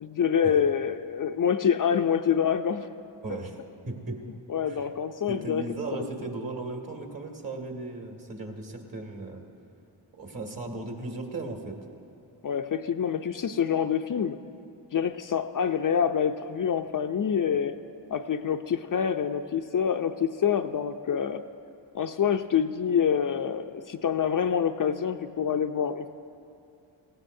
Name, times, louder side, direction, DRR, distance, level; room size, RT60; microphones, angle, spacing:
voice 1, 0.0-2.9 4.5-5.6 5.9-6.1 12.4-14.4 14.9-17.8 18.1-21.4 21.9-26.1, left 8 dB, 45° left, 7 dB, 0.5 m, -26 dB
voice 2, 3.2-3.6 3.9-4.2 4.7-4.9 5.3-9.4 10.1-11.8, right 2 dB, 45° right, 2 dB, 2.2 m, -36 dB
17.5 x 16.5 x 2.7 m, 2.7 s
cardioid pair, 55°, 45 cm